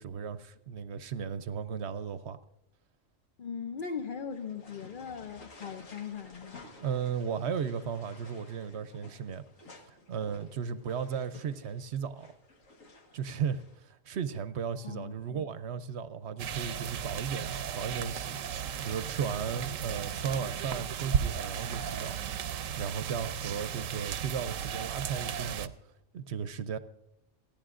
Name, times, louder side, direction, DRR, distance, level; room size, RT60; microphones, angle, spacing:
voice 1, 0.0-2.4 6.8-9.4 9.9-12.3 13.1-18.4 18.8-22.2 22.4-25.7 26.1-26.8, right 7 dB, 60° right, 0.9 m, -35 dB
voice 2, 3.4-6.6 14.8-15.5, left 6 dB, 45° left, 0.8 m, -39 dB
sound 1, 4.3-13.8, left 3 dB, 85° left, 1.9 m, -54 dB
sound 2, 16.4-25.7, right 8 dB, 85° right, 1.0 m, -35 dB
29.5 x 10.5 x 2.5 m
omnidirectional pair, 1.3 m